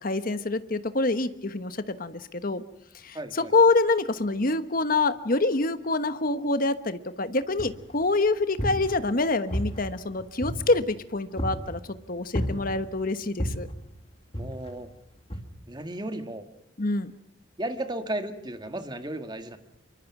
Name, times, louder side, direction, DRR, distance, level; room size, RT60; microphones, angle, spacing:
voice 1, 0.0-2.6 3.0-11.8 12.1-13.7 16.8-17.1, left 3 dB, 45° left, 11 dB, 1.3 m, -26 dB
voice 2, 3.1-3.5 14.3-14.9 15.7-16.4 17.6-19.6, right 1 dB, 25° right, 7 dB, 1.8 m, -34 dB
sound 1, 7.6-8.0 8.4-9.2 9.5-11.0 11.4-11.8 12.4-13.0 13.4-13.8 14.3-14.9 15.3-15.4, equal, 30° left, 2.7 m, -32 dB
27.0 x 24.0 x 6.1 m, 0.74 s
head